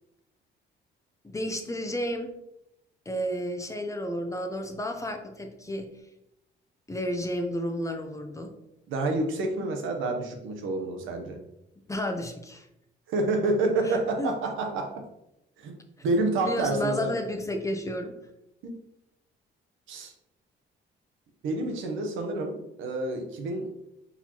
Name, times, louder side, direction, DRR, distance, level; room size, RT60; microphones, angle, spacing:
voice 1, 1.2-2.3 3.1-5.9 6.9-8.5 11.9-12.7 13.8-14.3 16.4-18.1, left 1 dB, 15° left, 4 dB, 0.7 m, -31 dB
voice 2, 8.9-11.4 13.1-15.0 15.6-15.8 16.0-17.1 19.9-20.1 21.4-23.7, right 2 dB, 85° right, 3 dB, 0.9 m, -28 dB
4.4 x 4.1 x 2.9 m, 0.84 s
cardioid pair, 90°, 20 cm